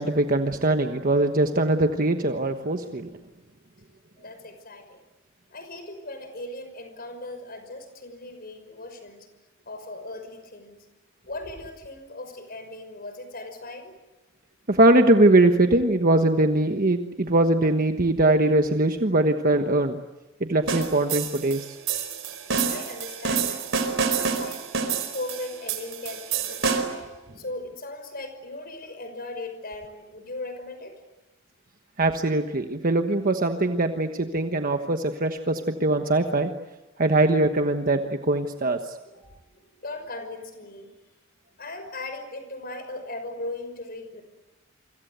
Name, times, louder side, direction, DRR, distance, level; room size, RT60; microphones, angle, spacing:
voice 1, 0.0-3.1 14.7-20.0 20.4-21.8 32.0-36.5 37.0-38.8, right 2 dB, 45° right, 6 dB, 1.3 m, -21 dB
voice 2, 4.1-5.0 5.5-9.3 9.7-10.8 11.2-14.0 22.7-23.7 24.1-26.9 27.4-31.0 39.0-39.2 39.5-41.0 41.6-44.2, left 2 dB, 50° left, 8 dB, 5.8 m, -38 dB
sound 1, 20.7-27.1, right 5 dB, 65° right, 4.6 m, -28 dB
28.5 x 25.0 x 8.1 m, 1.0 s
head